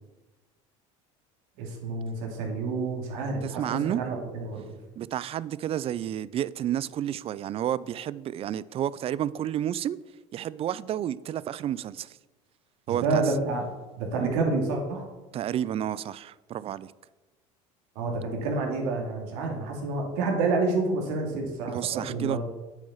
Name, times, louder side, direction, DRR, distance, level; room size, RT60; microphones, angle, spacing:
voice 1, 1.6-4.6 12.9-13.6 14.0-15.1 18.0-22.4, right 3 dB, 75° right, 2.5 m, -29 dB
voice 2, 3.4-4.0 5.0-10.0 10.3-12.2 12.9-13.3 14.2-14.3 15.3-16.9 21.7-22.4, right 11 dB, 40° right, 0.4 m, -31 dB
8.4 x 6.5 x 5.6 m
supercardioid pair, 100°, 16 cm